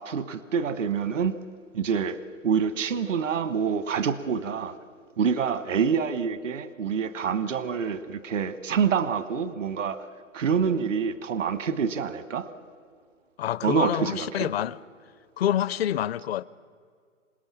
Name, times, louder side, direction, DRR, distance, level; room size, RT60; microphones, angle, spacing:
voice 1, 0.0-1.3 1.7-4.7 5.2-10.1 10.3-12.5 13.6-14.5, right 6 dB, 75° right, 1.2 m, -27 dB
voice 2, 13.4-14.8 15.4-16.4, left 11 dB, 55° left, 0.7 m, -27 dB
27.0 x 18.0 x 7.3 m
figure-of-eight pair, 120°, 38 cm